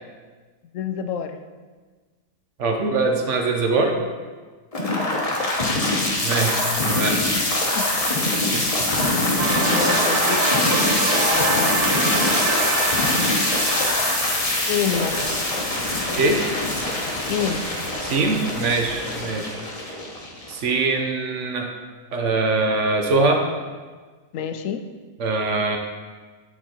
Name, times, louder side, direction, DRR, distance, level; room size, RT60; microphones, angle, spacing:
voice 1, 0.7-1.4 5.0-5.2 7.3-7.5 7.7-8.1 8.6-8.8 9.7-10.7 11.1-12.2 14.7-15.3 17.3-17.7 24.3-24.9, left 8 dB, 70° left, 9 dB, 0.8 m, -28 dB
voice 2, 2.6-3.9 6.2-7.2 8.5-8.7 16.2-16.4 18.0-19.6 20.5-21.7 22.1-23.4 25.2-25.8, right 3 dB, 55° right, 3 dB, 1.0 m, -22 dB
sound 1, 4.7-20.7, left 2 dB, 25° left, 1.0 m, -23 dB
sound 2, 9.4-16.2, right 5 dB, 75° right, 1.2 m, -27 dB
8.8 x 4.6 x 4.3 m, 1.4 s
omnidirectional pair, 1.7 m